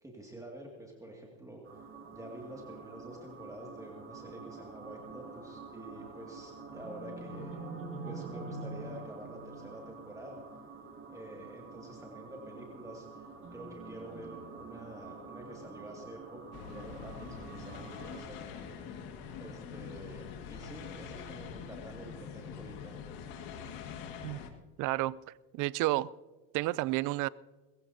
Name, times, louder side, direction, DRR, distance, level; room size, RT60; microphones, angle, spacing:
voice 1, 0.0-1.6 2.1-7.6 8.0-10.4 11.1-18.8 19.4-23.0, right 1 dB, 10° right, 2.2 m, -48 dB
sound 1, 1.6-18.2, right 3 dB, 40° right, 5.5 m, -46 dB
sound 2, 16.5-24.5, left 7 dB, 70° left, 2.0 m, -44 dB
voice 2, 24.8-25.2 25.5-26.1 26.5-27.3, right 18 dB, 60° right, 0.5 m, -30 dB
21.0 x 15.5 x 2.8 m
supercardioid pair, 110°, 35 cm